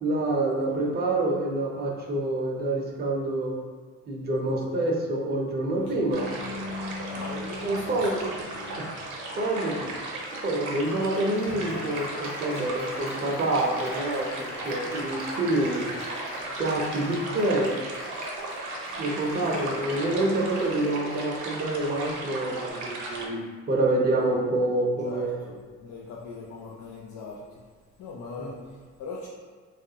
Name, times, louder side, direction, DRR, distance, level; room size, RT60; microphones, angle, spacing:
voice 1, 0.0-3.6 4.1-6.3 7.6-8.3 8.8-8.9 9.4-9.9 10.4-15.9 16.6-17.8 19.0-25.4 28.4-28.5, right 2 dB, 35° right, -1 dB, 0.5 m, -27 dB
Applause, 5.7-22.7, left 2 dB, 45° left, 1.1 m, -42 dB
sound 1, 6.1-23.3, right 2 dB, 75° right, 0.6 m, -36 dB
voice 2, 7.1-8.9 19.4-19.9 25.0-27.6 28.0-29.3, left 3 dB, 75° left, -4 dB, 0.5 m, -41 dB
3.0 x 2.4 x 2.7 m, 1.5 s
cardioid pair, 90°, 30 cm